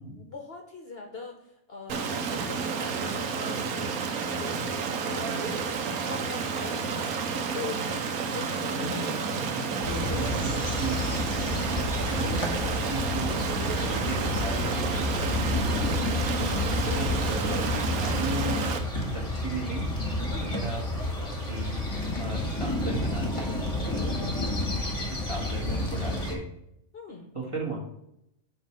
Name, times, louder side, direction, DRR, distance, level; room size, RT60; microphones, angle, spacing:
voice 1, 0.2-4.8 5.1-5.6 6.0-7.9 8.3-9.5 16.6-17.0 20.3-20.6 24.0-24.4 26.9-27.4, left 4 dB, 50° left, 3 dB, 0.9 m, -42 dB
Stream, 1.9-18.8, right 5 dB, 85° right, 1.2 m, -31 dB
voice 2, 8.5-16.3 16.8-18.6 19.0-19.9 20.4-20.8 21.2-21.8 22.2-23.6 25.3-26.5 27.3-27.8, right 2 dB, 20° right, -2 dB, 1.5 m, -36 dB
sound 1, 9.8-26.3, left 2 dB, 25° left, 1.6 m, -30 dB
7.9 x 3.2 x 6.0 m, 0.81 s
omnidirectional pair, 1.5 m